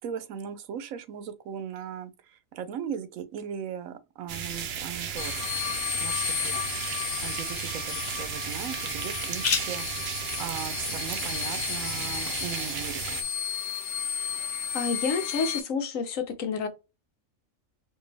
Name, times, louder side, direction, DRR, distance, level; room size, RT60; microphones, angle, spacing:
voice 1, 0.0-5.5 6.0-6.5 7.2-9.9 10.4-13.2, right 8 dB, 90° right, 1.1 m, -38 dB
sound 1, 4.3-13.2, right 8 dB, 60° right, 0.8 m, -34 dB
sound 2, 5.2-15.6, left 9 dB, 65° left, 0.9 m, -33 dB
sound 3, 5.4-12.9, left 6 dB, 45° left, 0.6 m, -39 dB
voice 2, 14.7-16.7, left 5 dB, 80° left, 1.3 m, -29 dB
4.4 x 2.6 x 3.3 m
omnidirectional pair, 1.4 m